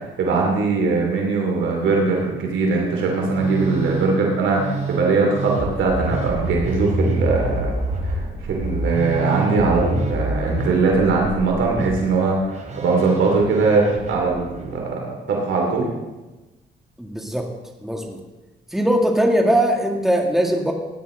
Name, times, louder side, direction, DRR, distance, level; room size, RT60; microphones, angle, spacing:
voice 1, 0.0-7.7 8.0-8.2 8.5-15.9, right 3 dB, 75° right, 0 dB, 2.7 m, -21 dB
Musical instrument, 3.0-14.7, right 2 dB, 35° right, 2.8 m, -27 dB
voice 2, 17.0-17.5 17.8-18.2 18.7-20.7, right 1 dB, ahead, 2 dB, 1.8 m, -20 dB
16.0 x 10.0 x 3.8 m, 1.1 s
cardioid pair, 90°, 20 cm